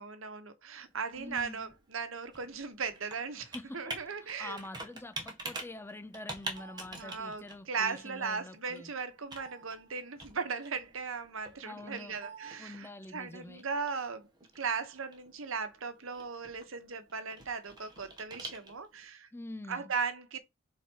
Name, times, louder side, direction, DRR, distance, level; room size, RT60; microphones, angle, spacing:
voice 1, 0.0-4.6 6.9-14.3 14.5-19.3 19.7-20.4, right 5 dB, 75° right, 1.1 m, -37 dB
Computer keyboard, 0.8-19.1, right 2 dB, 20° right, 1.6 m, -47 dB
voice 2, 1.2-1.7 3.5-8.9 11.6-12.2 12.6-13.6 19.3-19.9, left 2 dB, 10° left, 0.4 m, -46 dB
5.8 x 4.1 x 4.5 m
head